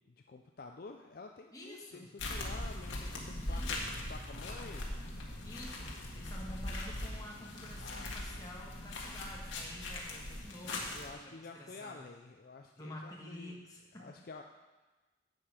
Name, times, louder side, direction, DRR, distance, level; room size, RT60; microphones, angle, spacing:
voice 1, 0.0-3.8 4.1-4.9 7.8-8.5 10.9-13.6 13.9-14.4, left 3 dB, 50° left, 4 dB, 0.4 m, -50 dB
voice 2, 1.5-2.1 3.4-3.8 5.4-12.0 12.8-14.2, left 1 dB, 20° left, -2 dB, 1.5 m, -49 dB
sound 1, 2.2-11.1, left 1 dB, 85° left, 1.7 m, -40 dB
10.5 x 7.6 x 5.0 m, 1.2 s
head